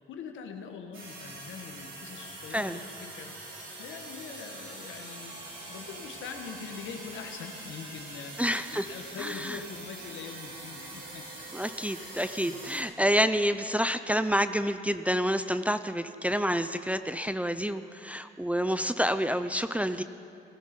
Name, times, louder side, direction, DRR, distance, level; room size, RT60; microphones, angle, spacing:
voice 1, 0.0-3.3 3.8-5.3 5.7-8.4 8.7-11.4 11.9-12.1 12.4-12.7 13.0-13.1, left 6 dB, 75° left, 4 dB, 1.5 m, -43 dB
sound 1, 0.9-12.8, right 2 dB, 75° right, 4.6 m, -44 dB
voice 2, 8.4-8.9 9.2-9.6 11.5-20.0, equal, 5° right, 10 dB, 0.4 m, -28 dB
18.0 x 13.5 x 5.3 m, 2.5 s
cardioid pair, 90°, 20 cm